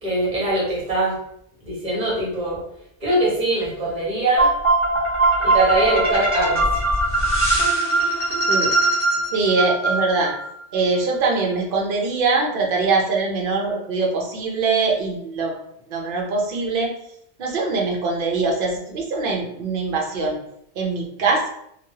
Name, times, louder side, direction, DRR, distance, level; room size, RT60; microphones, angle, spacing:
voice 1, 0.0-1.1 1.6-2.6 3.0-4.5 5.4-6.6, right 2 dB, 40° right, -5 dB, 1.2 m, -22 dB
sound 1, 4.4-10.5, right 2 dB, 15° right, 0.9 m, -20 dB
voice 2, 9.3-10.3 10.7-15.6 15.9-16.9 17.4-20.4 20.8-21.5, right 3 dB, 55° right, 0 dB, 0.8 m, -22 dB
3.0 x 2.2 x 2.7 m, 0.73 s
omnidirectional pair, 1.2 m